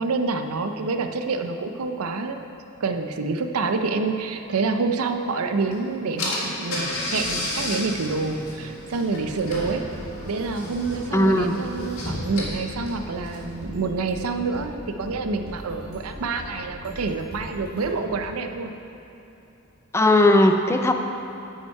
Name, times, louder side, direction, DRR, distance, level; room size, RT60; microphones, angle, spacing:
voice 1, 0.0-2.4 2.8-9.8 10.3-18.7, right 4 dB, 80° right, 7 dB, 0.5 m, -27 dB
Car / Engine, 5.7-5.8 6.2-13.6, left 1 dB, 70° left, 1.9 m, -33 dB
sound 1, 9.1-18.3, equal, 50° right, 1.4 m, -40 dB
voice 2, 11.1-11.5 19.9-20.9, left 1 dB, 10° left, 5 dB, 0.3 m, -17 dB
8.8 x 5.7 x 4.7 m, 2.9 s
head